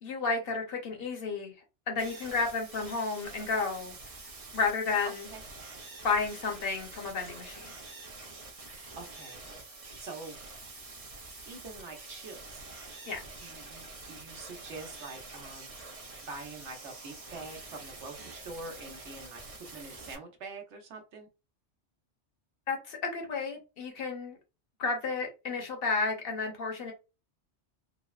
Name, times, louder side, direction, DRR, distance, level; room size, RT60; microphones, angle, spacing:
voice 1, 0.0-1.5 1.9-3.9 4.5-5.3 6.0-7.7 13.1-13.2 22.7-24.4 24.8-26.9, left 4 dB, 60° left, 0.9 m, -32 dB
sound 1, 2.0-20.1, right 3 dB, 50° right, 0.4 m, -47 dB
voice 2, 9.0-9.5 10.0-10.4 11.5-12.6 13.4-15.7 16.2-19.4 19.7-21.3, right 3 dB, 85° right, 1.1 m, -45 dB
3.2 x 2.1 x 2.3 m
omnidirectional pair, 1.2 m